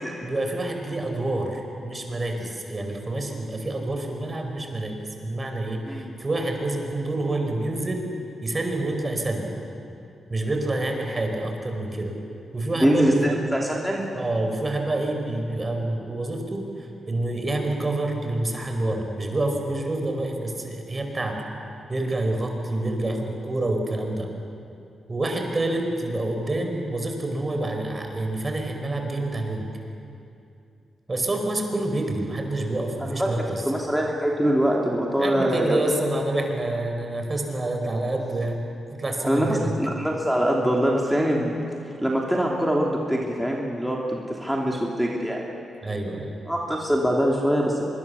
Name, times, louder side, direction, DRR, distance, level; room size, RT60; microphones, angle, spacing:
voice 1, 0.2-8.1 8.4-9.5 10.3-12.1 12.5-13.3 14.1-21.4 21.9-24.3 25.1-29.7 31.1-33.6 35.2-38.6 39.0-39.7 45.8-46.4, right 2 dB, 35° right, 3 dB, 5.0 m, -27 dB
voice 2, 12.8-14.1 33.0-35.9 39.2-41.6 42.0-45.4 46.5-47.8, equal, ahead, -2 dB, 3.1 m, -23 dB
24.5 x 21.5 x 7.2 m, 2.6 s
supercardioid pair, 50°, 0 cm